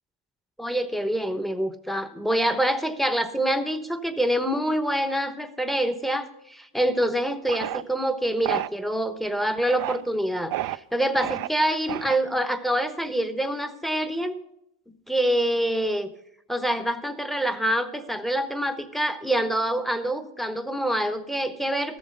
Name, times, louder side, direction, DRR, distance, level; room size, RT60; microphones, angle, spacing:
voice 1, 0.6-14.3 15.1-16.1 16.5-22.0, right 1 dB, ahead, 11 dB, 1.0 m, -26 dB
sound 1, 7.5-7.8 8.4-8.7 9.6-10.0 10.5-10.8 11.2-11.5 11.9-12.4, right 14 dB, 55° right, 0.5 m, -30 dB
13.5 x 7.3 x 6.7 m, 0.80 s
cardioid pair, 80°, 41 cm